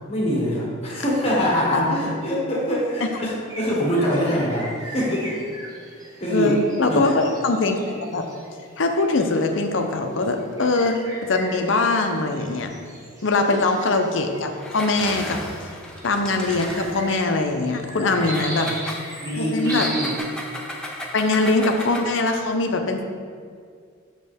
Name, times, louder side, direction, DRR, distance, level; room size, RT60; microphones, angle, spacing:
voice 1, 0.1-5.4 6.2-6.6 6.9-7.2 18.1-18.8 19.2-20.2, equal, 30° left, -5 dB, 1.5 m, -24 dB
sound 1, 3.5-20.2, right 1 dB, 15° right, 0.9 m, -39 dB
voice 2, 6.3-8.2 8.8-11.0 11.3-12.7 13.2-15.4 16.0-18.7 19.4-19.9 21.1-23.0, left 3 dB, 65° left, 5 dB, 0.6 m, -22 dB
Engine, 14.6-17.3 18.2-22.2, left 1 dB, 5° left, 0.6 m, -35 dB
6.5 x 6.3 x 3.5 m, 2.1 s
head